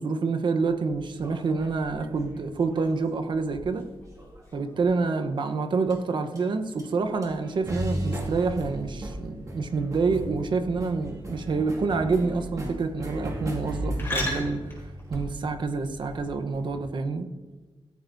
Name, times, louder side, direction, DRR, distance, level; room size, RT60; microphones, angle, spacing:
voice 1, 0.0-3.9 4.5-14.6 15.1-17.3, right 4 dB, 55° right, 8 dB, 0.9 m, -27 dB
sound 1, 0.7-3.3 4.2-4.7 5.9-6.0 6.4-6.5 6.8-6.9 7.2-17.0, right 1 dB, 35° right, 2.2 m, -36 dB
sound 2, 1.4-16.5, left 1 dB, 25° left, 4.2 m, -41 dB
16.5 x 13.0 x 2.7 m, 1.2 s
wide cardioid pair, 170°, 10 cm